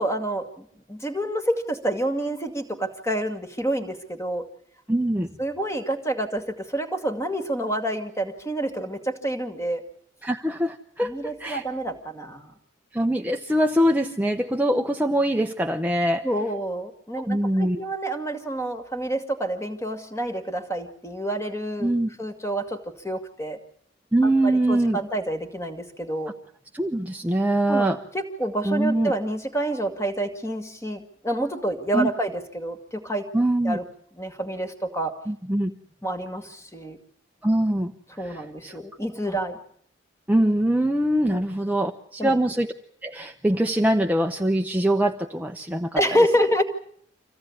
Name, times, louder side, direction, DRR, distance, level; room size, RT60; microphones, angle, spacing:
voice 1, 0.0-4.5 5.4-9.8 11.0-12.5 16.2-21.9 22.2-23.6 24.2-26.3 27.7-33.3 33.6-33.9 34.2-35.1 36.0-37.0 38.2-39.6 41.3-41.4 42.2-42.4 45.9-46.6, right 1 dB, 15° left, 6 dB, 2.2 m, -28 dB
voice 2, 4.9-5.3 10.2-11.6 12.9-16.2 17.3-17.8 21.8-22.1 24.1-25.0 26.7-28.0 28.6-29.1 31.9-32.1 33.3-33.8 35.3-35.7 37.4-37.9 38.2-38.8 40.3-42.7 43.0-46.0, right 1 dB, 10° right, 3 dB, 0.9 m, -23 dB
26.5 x 16.0 x 9.7 m, 0.64 s
head